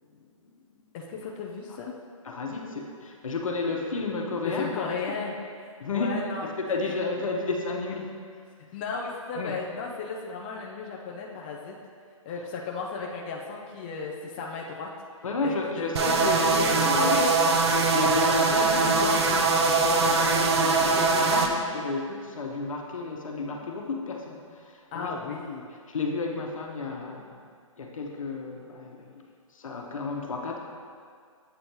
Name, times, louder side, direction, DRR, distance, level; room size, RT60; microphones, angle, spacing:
voice 1, 0.9-2.0 4.4-5.3 5.9-6.5 8.7-11.8 12.3-14.9 15.4-15.9 16.9-17.6 24.9-25.7, left 4 dB, 20° left, -2 dB, 0.3 m, -34 dB
voice 2, 2.2-5.0 5.8-6.2 6.4-8.1 9.3-9.5 15.2-17.2 17.9-25.1 25.9-27.4 27.8-29.2 29.5-30.6, left 3 dB, 70° left, 1 dB, 1.0 m, -32 dB
sound 1, 16.0-21.5, right 4 dB, 50° right, 0.6 m, -22 dB
7.8 x 5.2 x 3.0 m, 2.1 s
hypercardioid pair, 150°, 18 cm